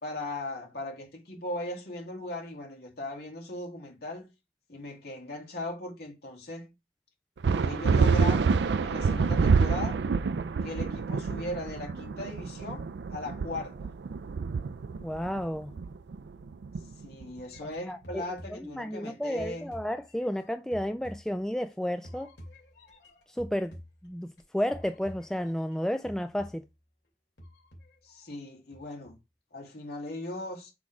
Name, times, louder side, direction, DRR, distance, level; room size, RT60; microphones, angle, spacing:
voice 1, 0.0-4.3 4.7-6.7 7.6-10.0 10.6-13.9 17.0-19.7 28.0-29.2 29.5-30.7, left 1 dB, 60° left, 2.4 m, -38 dB
sound 1, 7.4-17.4, right 5 dB, 75° right, 0.4 m, -27 dB
voice 2, 15.0-15.7 17.9-18.2 18.7-22.3 23.4-23.8 24.0-26.6, equal, 5° left, 0.3 m, -32 dB
sound 2, 17.5-19.1 19.4-21.7 22.0-24.4 24.7-25.8 26.0-26.8 27.4-28.4 28.7-29.2, equal, 85° left, 2.6 m, -49 dB
6.0 x 3.7 x 4.8 m
head